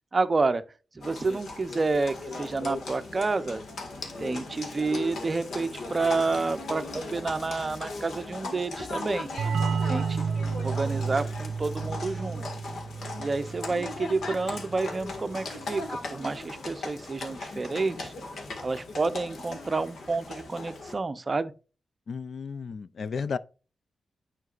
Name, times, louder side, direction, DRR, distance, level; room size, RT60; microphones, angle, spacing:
voice 1, 0.1-0.6 0.9-3.6 4.2-9.3 9.9-10.2 10.6-12.4 13.2-18.1 18.6-21.5, right 3 dB, 30° right, 0.6 m, -29 dB
Livestock farm animals working animals, 1.0-20.9, left 2 dB, 75° left, 1.7 m, -38 dB
sound 1, 9.4-14.8, right 5 dB, 80° right, 0.3 m, -31 dB
voice 2, 22.1-23.4, left 5 dB, 55° left, 0.4 m, -33 dB
9.4 x 5.8 x 2.4 m
wide cardioid pair, 150°, 0 cm